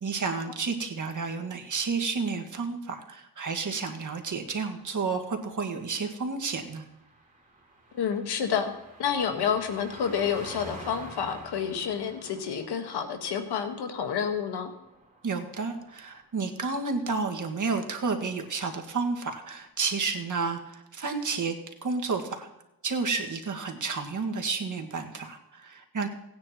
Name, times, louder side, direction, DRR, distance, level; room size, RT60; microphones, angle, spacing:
voice 1, 0.0-6.9 15.2-21.6 21.8-22.5 22.8-26.1, right 4 dB, 50° right, 3 dB, 1.8 m, -31 dB
Car passing by, 4.4-16.3 16.6-16.9, right 1 dB, 20° right, 3.8 m, -49 dB
voice 2, 7.9-8.7 9.0-14.7, left 7 dB, 85° left, 7 dB, 1.4 m, -29 dB
18.0 x 9.7 x 3.0 m, 0.92 s
cardioid pair, 65°, 39 cm